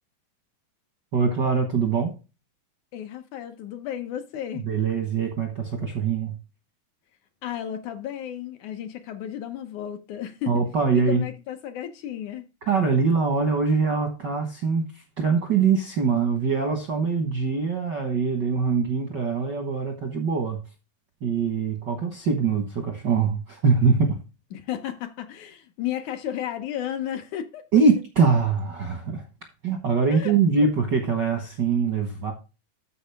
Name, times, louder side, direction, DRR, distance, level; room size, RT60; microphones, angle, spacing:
voice 1, 1.1-2.1 4.6-6.4 10.5-11.2 12.6-14.8 15.2-20.6 21.2-24.2 27.7-29.2 29.6-32.3, right 5 dB, 60° right, 1.1 m, -23 dB
voice 2, 2.9-4.7 7.4-10.6 10.9-12.4 24.5-27.6 30.1-30.4, left 10 dB, 70° left, 2.0 m, -33 dB
13.5 x 4.8 x 3.4 m
omnidirectional pair, 4.0 m